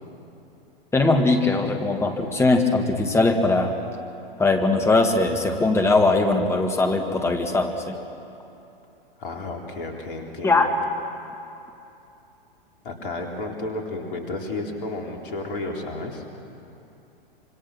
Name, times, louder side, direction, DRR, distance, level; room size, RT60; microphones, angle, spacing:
voice 1, 0.9-3.7 4.4-8.0 10.4-10.7, left 3 dB, 10° left, 3 dB, 1.9 m, -20 dB
voice 2, 9.2-10.7 12.8-16.2, left 2 dB, 60° left, 1 dB, 3.7 m, -32 dB
26.0 x 24.5 x 6.1 m, 2.8 s
figure-of-eight pair, 100°, 30 cm